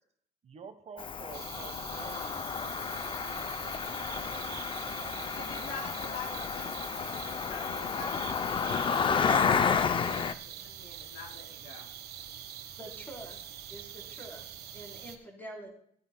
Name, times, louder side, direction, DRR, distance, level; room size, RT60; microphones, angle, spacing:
voice 1, 0.4-5.6, right 5 dB, 40° right, 7 dB, 1.2 m, -51 dB
Cricket, 1.0-10.3, left 6 dB, 30° left, 0.5 m, -31 dB
sound 1, 1.3-15.2, right 10 dB, 70° right, 1.3 m, -45 dB
voice 2, 5.3-11.9, left 3 dB, 80° left, 0 dB, 3.3 m, -47 dB
voice 3, 12.8-15.7, right 1 dB, 10° left, 0 dB, 3.6 m, -47 dB
16.5 x 9.8 x 2.2 m, 0.67 s
cardioid pair, 110°, 17 cm